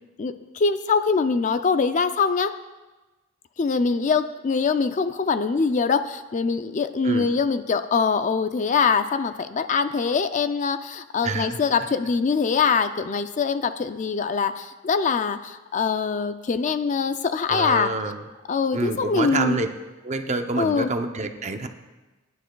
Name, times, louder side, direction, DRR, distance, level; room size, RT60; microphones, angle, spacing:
voice 1, 0.2-2.5 3.6-17.9 18.5-19.6 20.6-20.9, left 5 dB, 35° left, 10 dB, 0.4 m, -23 dB
voice 2, 11.2-11.6 17.5-18.3 18.7-19.7 20.0-21.7, right 3 dB, 30° right, 7 dB, 0.6 m, -27 dB
22.0 x 10.0 x 2.3 m, 1.2 s
head